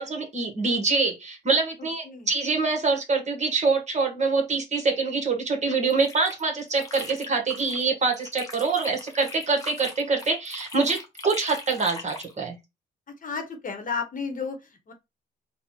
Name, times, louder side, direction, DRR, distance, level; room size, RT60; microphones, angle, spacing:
voice 1, 0.0-12.6, right 4 dB, 35° right, 1.6 m, -25 dB
sound 1, 5.7-7.9 8.1-12.3, left 2 dB, 15° left, 1.4 m, -41 dB
voice 2, 13.2-14.9, left 5 dB, 40° left, 1.1 m, -32 dB
4.0 x 2.4 x 4.4 m
cardioid pair, 90°, 20 cm